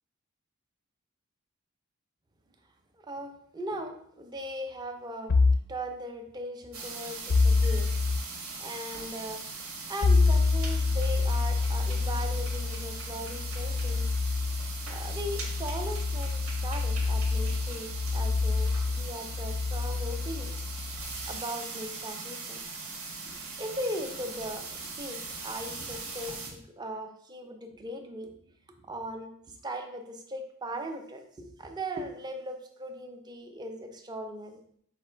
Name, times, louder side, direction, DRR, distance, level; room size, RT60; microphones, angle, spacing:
voice 1, 3.1-7.9 8.6-9.4 9.9-14.1 14.9-20.6 21.3-22.6 23.3-28.3 28.8-34.6, right 1 dB, 20° right, 5 dB, 0.4 m, -39 dB
sound 1, 5.3-5.7 7.3-8.2 10.0-21.4, left 4 dB, 45° left, 0.4 m, -27 dB
sound 2, 6.7-26.5, right 4 dB, 85° right, 0.9 m, -40 dB
4.0 x 2.4 x 4.4 m, 0.65 s
head